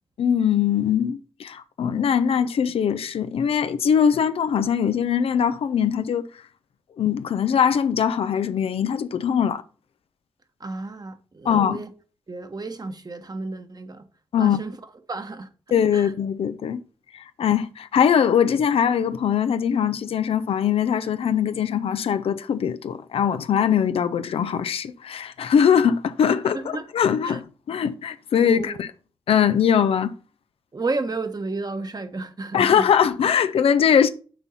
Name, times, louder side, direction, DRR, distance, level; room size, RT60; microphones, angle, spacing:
voice 1, 0.2-6.3 7.0-9.6 11.4-11.8 14.3-14.6 15.7-16.8 17.1-26.6 26.9-28.7 29.3-30.1 32.5-34.1, left 8 dB, 75° left, 0.6 m, -21 dB
voice 2, 10.6-11.9 12.3-14.1 14.4-14.8 15.1-15.5 15.9-16.1 26.5-26.9 27.2-27.4 28.4-28.8 30.7-32.9, right 3 dB, 40° right, 1.3 m, -32 dB
7.2 x 4.5 x 5.5 m
supercardioid pair, 45°, 10 cm